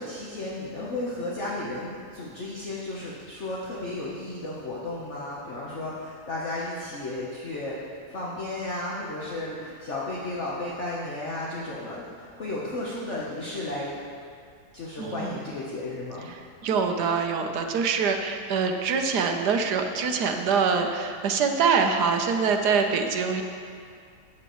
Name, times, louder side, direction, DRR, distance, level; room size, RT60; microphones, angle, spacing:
voice 1, 0.0-7.8 8.1-13.9 14.7-16.3, left 2 dB, 50° left, -6 dB, 1.4 m, -33 dB
voice 2, 15.0-15.4 16.3-23.4, right 5 dB, 85° right, 5 dB, 1.4 m, -24 dB
14.5 x 9.2 x 3.1 m, 2.3 s
omnidirectional pair, 1.7 m